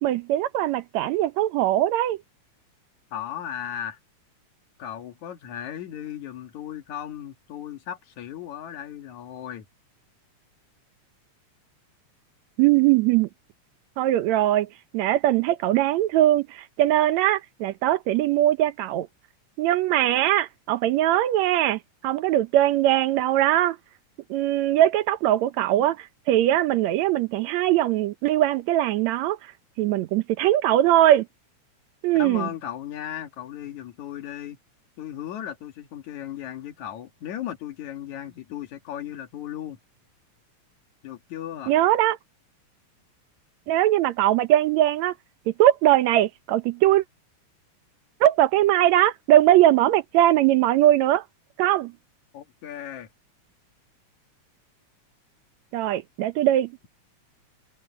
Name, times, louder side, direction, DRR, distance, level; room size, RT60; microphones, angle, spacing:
voice 1, 0.0-2.2 12.6-13.3 14.0-14.7 14.9-19.1 19.6-23.8 24.3-29.4 29.8-31.3 32.0-32.5 41.7-42.2 43.7-45.1 45.5-47.0 48.2-51.2 51.6-51.9 55.7-56.7, right 13 dB, 75° right, 2.0 m, -21 dB
voice 2, 3.1-4.0 4.8-9.7 32.1-34.6 35.0-39.8 41.0-41.7 52.3-53.1, left 10 dB, 75° left, 3.0 m, -36 dB
omnidirectional pair, 3.3 m